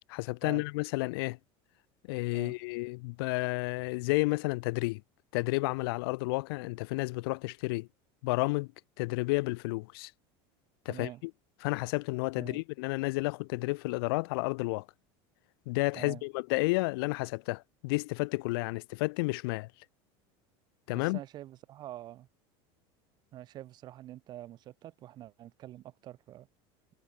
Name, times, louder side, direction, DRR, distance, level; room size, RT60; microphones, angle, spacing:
voice 1, 0.1-1.4 2.1-5.0 5.3-7.9 8.2-8.7 9.0-10.1 10.9-11.1 11.6-14.8 15.7-19.7 20.9-21.2, left 25 dB, 70° left, 0.6 m, -31 dB
voice 2, 10.9-11.2 12.4-12.6 15.9-16.2 20.9-22.3 23.3-26.5, right 13 dB, 35° right, 4.5 m, -46 dB
cardioid pair, 170°, 13 cm